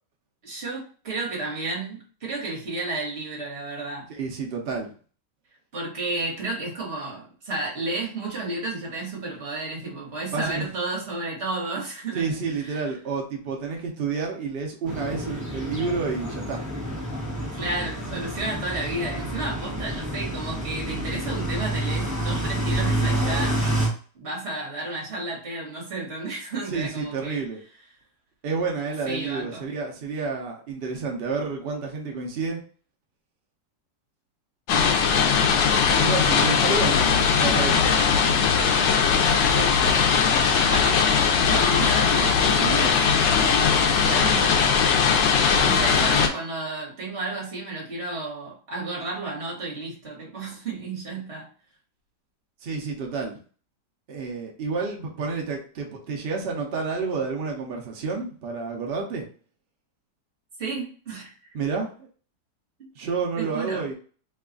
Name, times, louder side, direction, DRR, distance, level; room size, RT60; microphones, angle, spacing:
voice 1, 0.4-4.1 5.7-12.3 12.6-12.8 17.5-23.6 24.1-27.4 29.0-29.6 39.5-40.0 40.6-44.6 45.6-51.5 60.6-61.3 63.4-63.8, right 2 dB, 40° right, -2 dB, 1.3 m, -32 dB
voice 2, 4.1-4.9 10.3-10.7 12.1-16.6 26.7-27.6 28.4-32.6 36.0-38.0 52.6-53.4 54.1-59.2 61.5-62.1 63.0-63.9, right 4 dB, 80° right, 0 dB, 0.5 m, -29 dB
sound 1, 14.9-23.9, right 1 dB, 5° right, 0.6 m, -28 dB
sound 2, 34.7-46.3, left 6 dB, 85° left, 1.3 m, -20 dB
3.2 x 2.3 x 3.7 m, 0.41 s
omnidirectional pair, 1.9 m